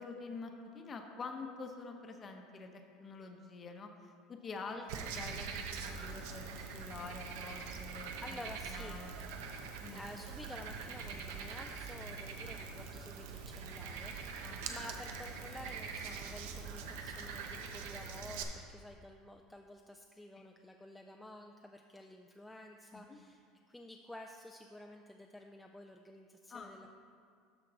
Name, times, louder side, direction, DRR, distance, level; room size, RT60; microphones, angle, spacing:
voice 1, 0.0-4.8 5.1-8.4 8.7-9.1 9.8-10.0 14.4-14.8 20.4-20.5 22.9-23.2 26.5-26.7, left 4 dB, 25° left, 4 dB, 0.7 m, -47 dB
voice 2, 4.7-5.1 8.2-9.0 9.9-26.9, left 1 dB, 5° left, 2 dB, 0.3 m, -51 dB
Frog, 4.9-18.4, right 5 dB, 80° right, 0.7 m, -43 dB
13.0 x 4.5 x 4.0 m, 2.3 s
cardioid pair, 145°, 0 cm